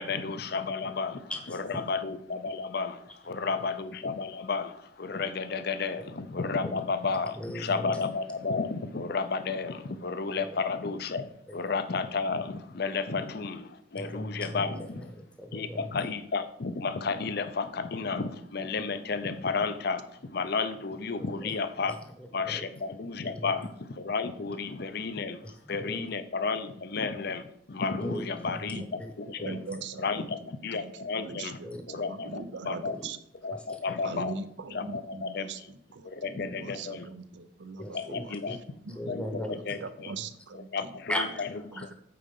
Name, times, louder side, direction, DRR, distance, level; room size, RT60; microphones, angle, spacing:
voice 1, 0.0-15.0 15.5-22.0 22.3-29.6 30.0-31.6 31.9-33.0 33.4-34.4 34.7-35.5 36.0-37.1 37.9-38.6 39.1-40.1 40.5-41.1, left 4 dB, 55° left, 11 dB, 0.6 m, -32 dB
voice 2, 1.3-1.8 3.3-3.7 6.6-6.7 7.4-8.0 10.3-10.6 11.5-11.6 13.1-13.2 13.9-15.9 21.2-21.6 21.9-22.7 23.2-23.7 25.4-26.1 28.0-29.8 31.6-31.8 32.2-32.4 32.8-33.0 33.5-34.2 37.8-38.6 38.9-39.8 41.1-41.9, equal, 5° left, 3 dB, 0.9 m, -39 dB
voice 3, 28.7-29.1 29.4-33.2 34.0-38.3 38.8-39.5 39.8-41.0 41.7-41.9, right 4 dB, 65° right, 12 dB, 0.6 m, -41 dB
8.7 x 4.2 x 5.4 m, 0.71 s
head